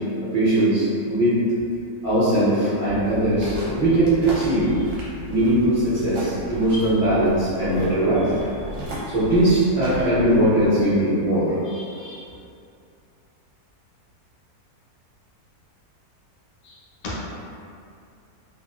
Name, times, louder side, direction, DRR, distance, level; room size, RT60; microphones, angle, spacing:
voice 1, 0.2-1.4 2.0-4.7 5.3-8.3 8.6-12.2, right 1 dB, 35° right, -13 dB, 0.7 m, -20 dB
sound 1, 2.8-10.7, left 1 dB, 70° right, 1.1 m, -35 dB
voice 2, 16.6-17.2, left 2 dB, 65° left, -7 dB, 1.1 m, -35 dB
2.9 x 2.3 x 2.4 m, 2.5 s
omnidirectional pair, 1.8 m